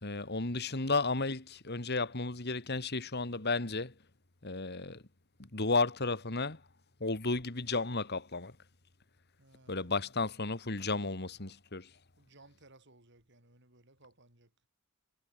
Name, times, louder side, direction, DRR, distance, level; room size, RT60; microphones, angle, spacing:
voice 1, 0.0-3.9 4.4-5.0 5.4-6.6 7.0-8.5 9.7-11.9, left 3 dB, 50° left, 2.2 m, -33 dB
voice 2, 9.4-9.9 12.2-14.5, right 2 dB, 55° right, 6.7 m, -61 dB
head